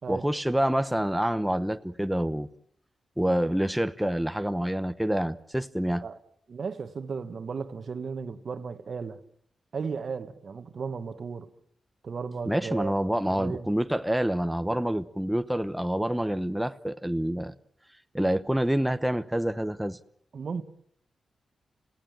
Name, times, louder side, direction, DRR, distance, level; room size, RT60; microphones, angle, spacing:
voice 1, 0.1-2.5 3.2-6.0 12.5-17.5 18.1-20.0, right 1 dB, 5° right, 0.9 m, -27 dB
voice 2, 6.5-9.2 9.7-11.5 12.0-13.7 20.3-20.6, right 5 dB, 60° right, 1.5 m, -35 dB
27.5 x 17.0 x 8.9 m
cardioid pair, 60°, 0 cm